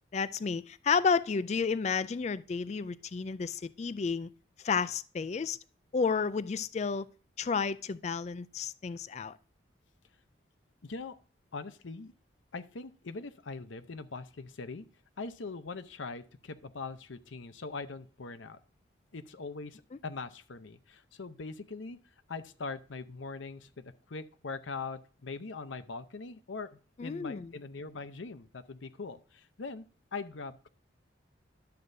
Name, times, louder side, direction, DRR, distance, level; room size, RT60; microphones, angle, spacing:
voice 1, 0.1-4.3 4.6-5.6 5.9-7.1 7.4-9.4 27.0-27.5, left 5 dB, 35° left, 0.3 m, -31 dB
voice 2, 10.8-11.2 11.5-12.1 12.5-14.9 15.2-18.6 19.1-22.0 22.3-26.7 27.0-29.8 30.1-30.7, left 4 dB, 80° left, 0.7 m, -41 dB
11.5 x 7.6 x 2.7 m
head